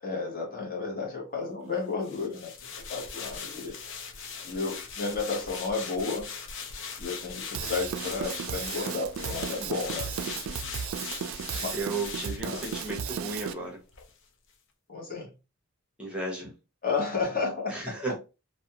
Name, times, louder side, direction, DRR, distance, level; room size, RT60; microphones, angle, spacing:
voice 1, 0.0-3.8 4.4-6.3 7.0-10.3 11.5-11.8 12.4-12.6 14.9-15.3 16.8-17.9, left 4 dB, 45° left, 0.9 m, -32 dB
voice 2, 1.4-1.7 8.3-8.4 11.7-13.8 16.0-16.5 17.7-18.2, right 2 dB, 5° right, 0.8 m, -35 dB
sound 1, 2.0-13.6 13.9-14.1, left 6 dB, 60° left, 0.5 m, -40 dB
Drum kit / Drum, 7.5-13.5, right 7 dB, 65° right, 0.3 m, -35 dB
2.5 x 2.1 x 2.7 m
head